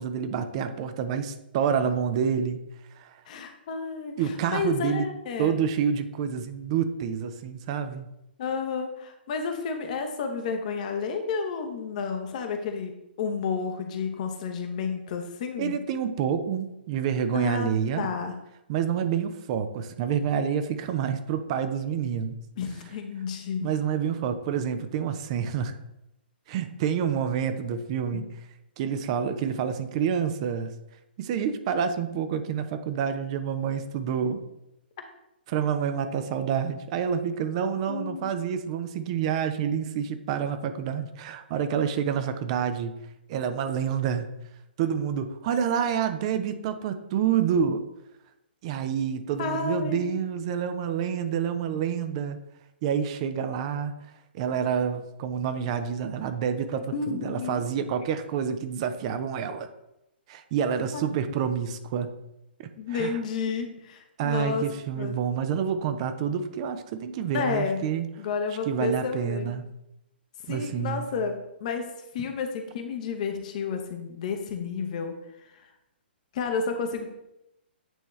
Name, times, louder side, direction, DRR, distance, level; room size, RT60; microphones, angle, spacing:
voice 1, 0.0-2.6 2.9-3.2 4.2-5.1 5.4-8.1 15.6-18.1 18.7-22.4 23.6-25.7 26.5-28.3 28.8-30.7 31.2-34.4 35.5-42.9 43.3-44.3 44.8-47.8 48.6-52.4 52.8-53.9 54.3-59.7 60.3-62.1 62.6-63.2 64.2-68.1 68.7-69.6 70.5-71.1 72.2-72.3, right 7 dB, 35° right, 9 dB, 0.5 m, -28 dB
voice 2, 3.3-5.6 8.4-15.8 17.3-17.7 18.0-18.3 22.6-23.7 28.1-28.2 37.9-38.4 49.4-50.0 56.8-57.6 60.9-61.2 62.8-64.7 65.0-65.1 67.3-67.8 68.2-69.6 70.5-75.1 76.3-77.1, left 5 dB, 45° left, 5 dB, 0.9 m, -31 dB
8.9 x 3.4 x 3.1 m, 0.85 s
figure-of-eight pair, 125°, 6 cm